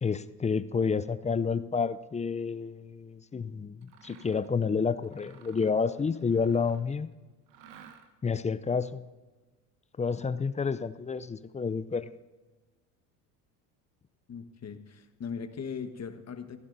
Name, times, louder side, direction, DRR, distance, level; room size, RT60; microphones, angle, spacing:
voice 1, 0.0-7.1 8.2-9.0 10.0-12.1, left 5 dB, 15° left, 14 dB, 0.5 m, -29 dB
Mechanisms, 3.8-4.5 5.0-6.9 7.5-8.3, right 8 dB, 80° right, 1.4 m, -55 dB
voice 2, 14.3-16.6, left 6 dB, 35° left, 8 dB, 1.4 m, -39 dB
22.0 x 15.0 x 2.7 m, 1.3 s
hypercardioid pair, 75°, 48 cm